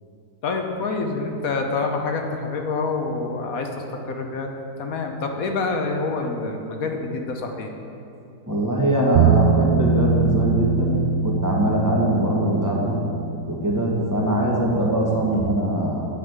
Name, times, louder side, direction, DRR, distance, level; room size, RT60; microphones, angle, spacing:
voice 1, 0.4-3.7 4.1-4.5 4.8-7.7, left 3 dB, 60° left, 3 dB, 1.3 m, -26 dB
voice 2, 8.5-11.0 11.2-13.0 13.5-16.1, right 1 dB, 10° right, -4 dB, 1.2 m, -22 dB
Bass guitar, 9.2-15.4, right 5 dB, 70° right, 0.9 m, -24 dB
8.7 x 5.5 x 8.0 m, 2.7 s
omnidirectional pair, 1.8 m